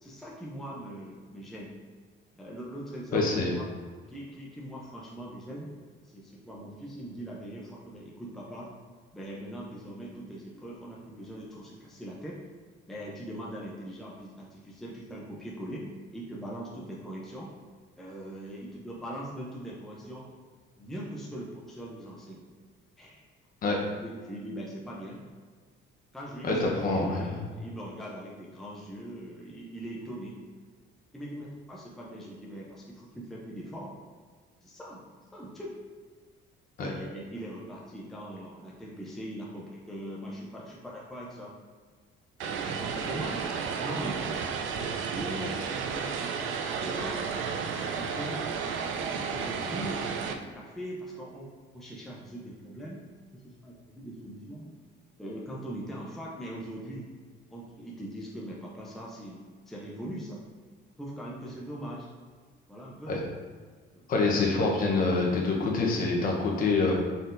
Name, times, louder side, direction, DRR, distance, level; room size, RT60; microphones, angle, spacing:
voice 1, 0.0-1.7 2.3-3.7 4.1-5.7 6.0-8.7 9.1-12.4 12.9-15.8 16.1-17.5 18.0-20.3 20.8-22.4 23.0-23.2 23.6-25.2 26.1-30.4 31.1-33.9 34.6-35.0 35.3-35.7 36.8-41.5 42.4-43.5 43.8-44.4 44.7-47.2 47.8-48.5 49.1-53.0 53.3-54.7 55.2-57.1 57.5-60.4 61.0-62.1 62.7-63.2 63.9-64.0, right 1 dB, ahead, -5 dB, 0.5 m, -41 dB
voice 2, 3.1-3.5 23.6-23.8 26.4-27.4 36.8-36.9 63.1-63.2 64.1-66.9, left 3 dB, 45° left, -1 dB, 0.9 m, -26 dB
Vehicle, 42.4-50.3, right 6 dB, 80° right, 0.4 m, -32 dB
4.1 x 3.9 x 2.5 m, 1.6 s
cardioid pair, 155°, 20 cm